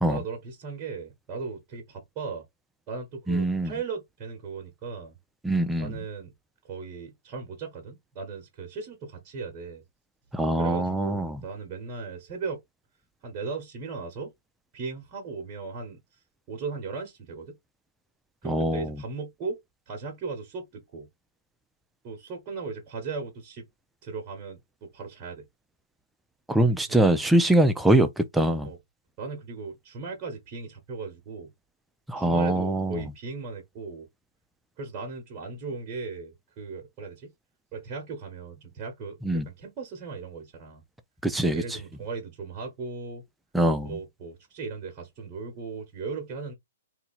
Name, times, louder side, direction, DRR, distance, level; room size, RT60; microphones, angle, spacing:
voice 1, 0.0-2.5 2.9-5.2 5.8-6.3 6.7-9.8 10.6-12.6 13.2-14.3 14.7-16.0 16.5-17.6 18.4-19.6 19.9-21.1 22.0-23.7 24.0-25.5 26.9-27.0 28.6-28.8 29.2-31.5 32.2-34.1 34.8-37.3 37.7-40.8 41.4-43.2 43.8-46.5, right 4 dB, 30° right, 1.2 m, -37 dB
voice 2, 3.3-3.7 5.4-5.9 10.3-11.4 18.4-18.9 26.5-28.7 32.1-33.0 39.2-39.4 41.2-41.6 43.5-43.9, right 1 dB, 5° right, 0.4 m, -23 dB
2.7 x 2.7 x 4.1 m
hypercardioid pair, 145°, 0 cm